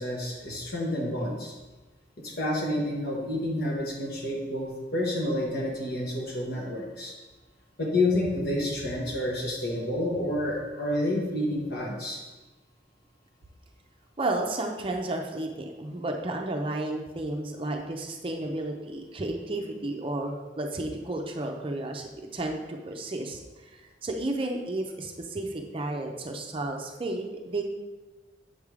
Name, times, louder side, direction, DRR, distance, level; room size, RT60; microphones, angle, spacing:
voice 1, 0.0-1.5 2.2-7.1 7.8-12.2, left 1 dB, 60° left, -1 dB, 1.5 m, -29 dB
voice 2, 14.2-23.4 23.7-27.6, right 2 dB, 30° right, 2 dB, 0.5 m, -32 dB
7.2 x 3.6 x 4.8 m, 1.2 s
head